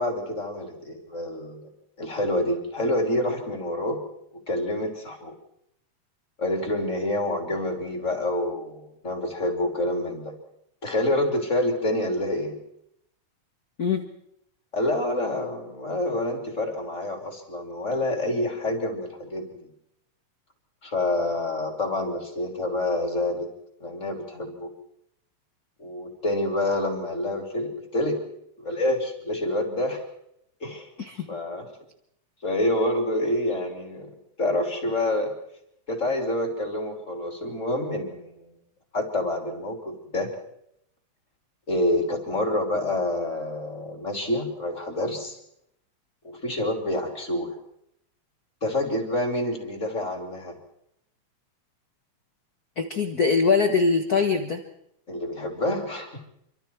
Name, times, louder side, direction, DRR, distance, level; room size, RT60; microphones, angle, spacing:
voice 1, 0.0-1.7 2.0-4.0 4.3-5.3 6.4-10.3 10.8-12.6 14.7-19.7 20.8-23.5 23.8-24.7 25.8-28.2 28.6-30.0 30.6-30.9 31.3-31.7 32.4-34.1 34.4-35.3 35.9-38.6 38.9-40.3 41.7-45.4 46.2-47.5 48.6-50.6 55.1-56.2, left 1 dB, 25° left, 2 dB, 3.5 m, -27 dB
voice 2, 52.8-54.6, left 4 dB, 45° left, 5 dB, 1.4 m, -22 dB
27.0 x 24.5 x 4.7 m, 0.75 s
omnidirectional pair, 3.3 m